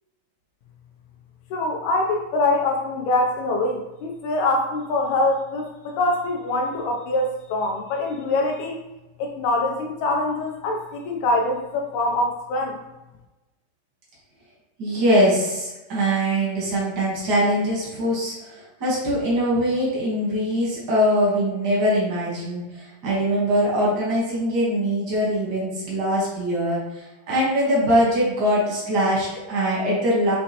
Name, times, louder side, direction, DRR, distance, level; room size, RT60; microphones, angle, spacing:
voice 1, 1.5-8.8 9.2-12.8, left 2 dB, 90° left, 1 dB, 1.6 m, -24 dB
voice 2, 14.8-30.4, equal, 75° right, -6 dB, 0.9 m, -22 dB
5.7 x 3.1 x 2.8 m, 1.0 s
omnidirectional pair, 3.9 m